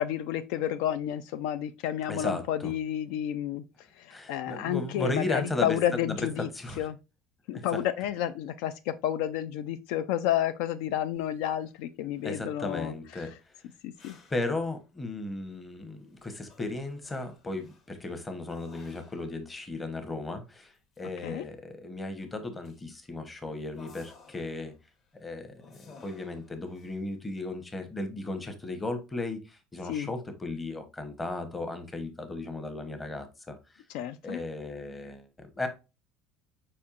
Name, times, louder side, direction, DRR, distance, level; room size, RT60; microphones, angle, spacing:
voice 1, 0.0-6.5 6.8-7.0 7.5-13.0 13.8-14.2 21.0-21.4 29.9-30.1 33.9-34.4, left 11 dB, 70° left, 0.4 m, -31 dB
voice 2, 2.1-2.7 4.1-5.8 6.0-6.3 6.5-6.8 7.5-7.8 12.2-13.3 14.3-24.7 25.1-33.8 34.2-35.7, left 2 dB, 10° left, 0.8 m, -35 dB
sound 1, 11.1-11.8 12.1-12.4 13.3-14.9 15.3-15.6 15.9-19.5 19.8-19.9 20.5-21.3 22.3-22.4 22.6-25.2 25.6-27.1, left 4 dB, 35° left, 1.0 m, -58 dB
5.2 x 4.3 x 2.4 m
cardioid pair, 155°, 0 cm